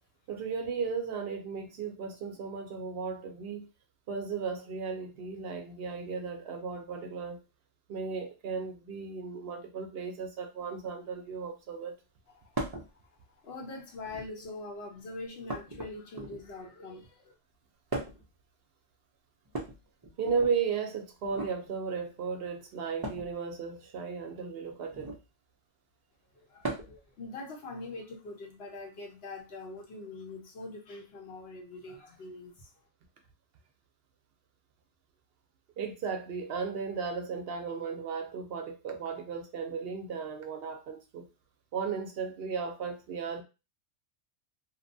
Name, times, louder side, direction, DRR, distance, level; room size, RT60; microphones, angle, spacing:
voice 1, 0.3-3.7 4.1-7.4 7.9-12.0 20.2-25.1 35.8-41.3 41.7-43.4, right 5 dB, 65° right, 0.7 m, -35 dB
sound 1, 12.5-12.9 13.9-14.4 15.5-16.6 17.9-18.3 19.4-20.5 21.2-21.5 23.0-23.3 24.9-25.3 26.6-27.0 28.5-28.6 29.8-29.9, right 2 dB, 30° right, 0.4 m, -38 dB
voice 2, 13.4-17.3 26.5-32.7, left 2 dB, 65° left, 0.9 m, -43 dB
2.8 x 2.1 x 2.6 m
omnidirectional pair, 1.2 m